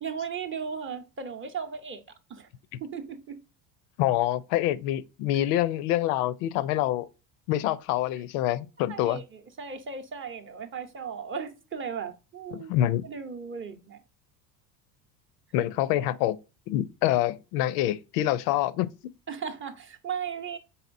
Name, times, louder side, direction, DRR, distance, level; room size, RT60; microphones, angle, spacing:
voice 1, 0.0-2.0 2.3-2.5 2.8-3.4 5.3-5.5 8.9-12.7 13.0-14.0 19.3-20.6, right 6 dB, 25° right, 0.7 m, -36 dB
voice 2, 4.0-7.1 7.5-9.2 12.5-13.0 15.5-16.4 16.7-18.9, left 13 dB, 70° left, 0.6 m, -26 dB
4.2 x 3.9 x 2.5 m
hypercardioid pair, 80°, 50 cm